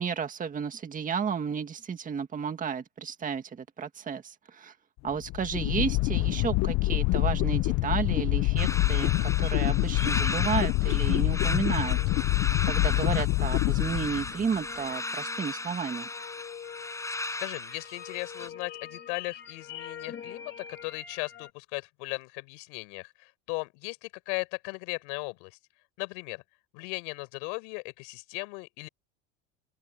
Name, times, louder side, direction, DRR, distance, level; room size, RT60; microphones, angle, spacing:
voice 1, 0.0-4.7 5.0-12.0 12.7-16.1, right 6 dB, 25° right, 1.8 m, -32 dB
sound 1, 5.1-14.6, left 21 dB, 50° left, 0.6 m, -26 dB
sound 2, 8.6-18.5, left 2 dB, 10° left, 6.5 m, -36 dB
sound 3, 9.2-12.3 12.7-21.5, left 8 dB, 30° left, 3.0 m, -46 dB
voice 2, 17.4-25.6 26.0-26.4 26.7-28.9, left 35 dB, 80° left, 5.9 m, -37 dB
open air
cardioid pair, 135°, 34 cm